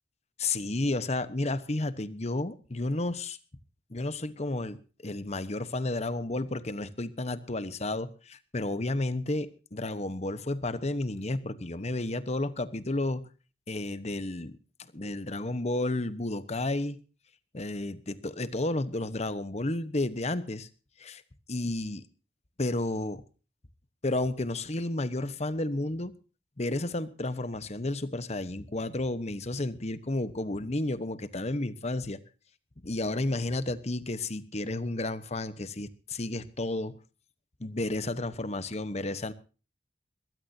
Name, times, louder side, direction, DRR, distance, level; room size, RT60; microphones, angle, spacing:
voice 1, 0.4-3.4 3.9-13.3 13.7-14.6 14.9-17.0 17.5-20.7 21.0-21.2 21.5-22.0 22.6-23.2 24.0-26.1 26.6-32.2 32.8-37.0 37.6-39.3, left 2 dB, 40° left, 14 dB, 1.1 m, -32 dB
22.5 x 15.5 x 2.8 m, 0.35 s
head